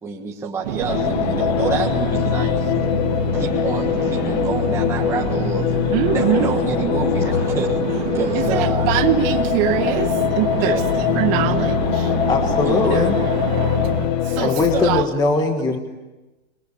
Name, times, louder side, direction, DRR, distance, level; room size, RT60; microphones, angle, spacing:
voice 1, 0.0-2.7 3.3-5.7 6.1-8.9 10.5-10.9 12.6-13.1 14.2-14.4 14.7-14.9, right 6 dB, 10° right, -2 dB, 1.5 m, -28 dB
sound 1, 0.6-14.1, right 10 dB, 45° right, 2.0 m, -28 dB
sound 2, 0.9-15.0, left 10 dB, 40° left, 1.2 m, -22 dB
voice 2, 5.9-6.7 8.3-10.8 11.1-12.1 12.9-13.1 14.3-15.1, right 14 dB, 30° right, 9 dB, 1.2 m, -23 dB
voice 3, 12.3-13.2 14.4-15.8, left 3 dB, 10° left, 4 dB, 1.5 m, -20 dB
28.0 x 22.0 x 8.6 m, 1.1 s
supercardioid pair, 175°, 34 cm